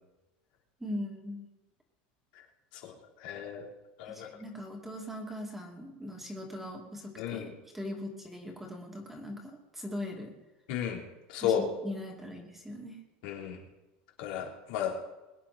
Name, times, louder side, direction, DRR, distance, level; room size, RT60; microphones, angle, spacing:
voice 1, 0.8-1.5 4.1-7.5 7.7-10.3 11.4-13.0, left 1 dB, 5° right, 0 dB, 2.5 m, -40 dB
voice 2, 3.2-3.7 4.0-4.3 7.2-7.5 10.7-11.0 11.3-11.7 13.2-13.6 14.2-14.9, left 9 dB, 70° left, -1 dB, 3.6 m, -33 dB
22.0 x 10.0 x 4.3 m, 1.1 s
supercardioid pair, 155°, 5 cm